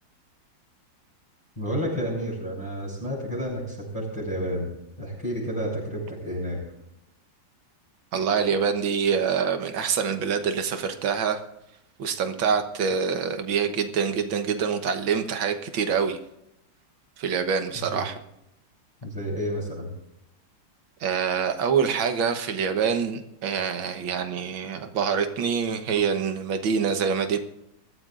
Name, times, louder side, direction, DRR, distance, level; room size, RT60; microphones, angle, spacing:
voice 1, 1.6-4.7 5.0-6.6 17.7-18.0 19.0-19.9, equal, 15° left, -5 dB, 6.7 m, -30 dB
voice 2, 8.1-11.4 12.0-16.2 17.2-18.2 21.0-27.4, right 6 dB, 90° right, 7 dB, 1.9 m, -25 dB
22.5 x 14.0 x 2.5 m, 0.83 s
omnidirectional pair, 2.1 m